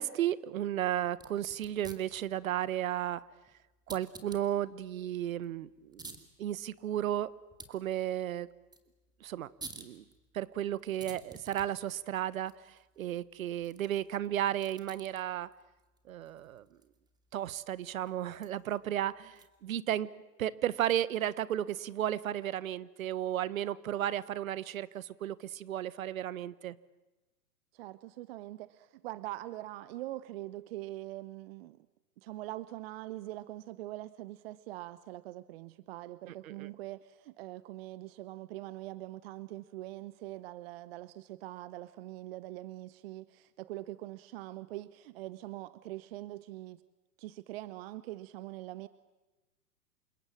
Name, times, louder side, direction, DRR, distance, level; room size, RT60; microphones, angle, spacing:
voice 1, 0.0-3.2 3.9-7.3 7.7-8.5 9.2-9.5 9.8-10.0 10.3-15.5 16.1-16.6 17.3-20.1 20.4-26.7 36.4-36.7, right 11 dB, 55° right, 1.4 m, -34 dB
sound 1, 1.1-19.8, right 3 dB, 10° right, 2.6 m, -54 dB
voice 2, 27.7-31.9 32.2-46.8 47.2-48.9, right 16 dB, 40° right, 0.9 m, -43 dB
29.0 x 26.0 x 7.6 m
hypercardioid pair, 120°, 47 cm